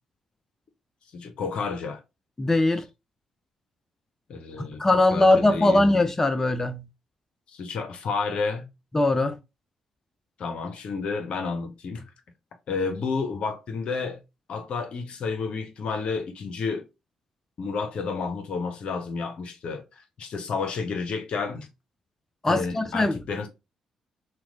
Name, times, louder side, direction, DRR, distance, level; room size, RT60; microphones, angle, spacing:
voice 1, 1.1-2.0 4.3-4.8 5.1-5.8 7.5-8.7 10.4-12.0 12.7-14.2 14.5-16.8 17.6-21.7 22.5-23.5, left 4 dB, 60° left, 0.7 m, -30 dB
voice 2, 2.4-2.8 4.6-6.8 8.9-9.4 22.4-23.2, left 2 dB, 20° left, 0.4 m, -21 dB
3.0 x 2.2 x 3.7 m
hypercardioid pair, 45°, 2 cm